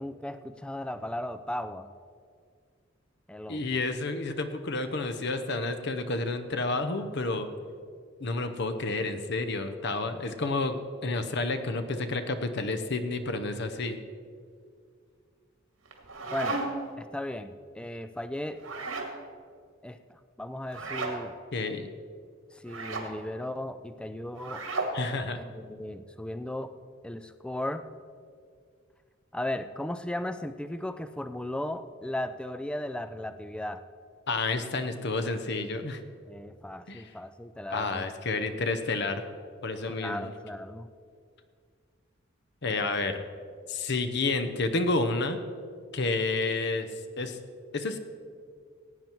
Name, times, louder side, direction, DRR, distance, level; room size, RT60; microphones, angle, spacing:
voice 1, 0.0-1.9 3.3-3.6 16.3-16.6 17.0-18.6 19.8-21.3 22.5-24.7 25.4-26.8 27.0-27.8 29.3-33.8 36.3-38.1 39.8-40.9, left 1 dB, 5° left, 11 dB, 0.4 m, -36 dB
voice 2, 3.5-7.5 8.2-10.8 11.0-14.0 21.5-21.9 24.9-25.4 34.3-36.0 36.9-37.1 37.7-39.2 39.6-40.3 42.6-43.2 43.7-45.4 45.9-46.9 47.2-47.4 47.7-48.0, left 3 dB, 55° left, 9 dB, 0.8 m, -30 dB
sound 1, 15.9-16.9 18.6-19.1 20.7-21.2 22.7-23.1 24.4-25.0, right 3 dB, 85° right, 2.0 m, -33 dB
17.0 x 9.1 x 4.5 m, 2.1 s
head